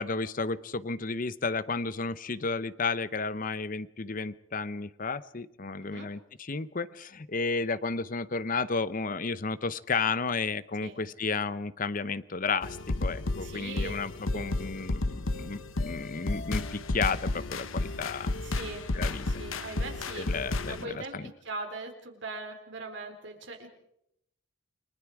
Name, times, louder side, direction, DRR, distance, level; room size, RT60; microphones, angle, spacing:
voice 1, 0.0-18.4 18.9-19.3 20.2-21.3, left 4 dB, 40° left, 16 dB, 0.8 m, -32 dB
voice 2, 5.8-6.1 10.8-11.0 13.4-14.0 14.3-14.6 18.4-18.9 19.2-23.7, right 3 dB, 60° right, 3 dB, 4.3 m, -41 dB
sound 1, 12.6-20.8, left 2 dB, 80° left, 1.1 m, -32 dB
29.5 x 22.0 x 4.9 m, 0.77 s
head